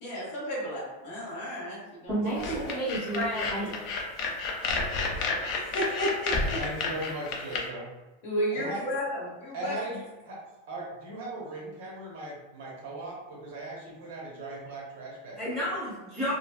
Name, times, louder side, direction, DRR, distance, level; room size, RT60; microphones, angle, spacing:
voice 1, 0.0-2.7 5.5-6.6 8.2-9.7, equal, 50° left, -6 dB, 1.2 m, -33 dB
voice 2, 2.1-3.8 15.3-16.3, right 1 dB, 5° right, -12 dB, 1.5 m, -31 dB
sound 1, 2.4-7.6, left 3 dB, 30° left, 0.4 m, -30 dB
voice 3, 6.5-7.9 8.5-8.8 9.5-10.4 10.7-15.7, right 1 dB, 55° right, -3 dB, 0.9 m, -38 dB
3.1 x 2.5 x 2.3 m, 1.1 s
supercardioid pair, 175°, 0 cm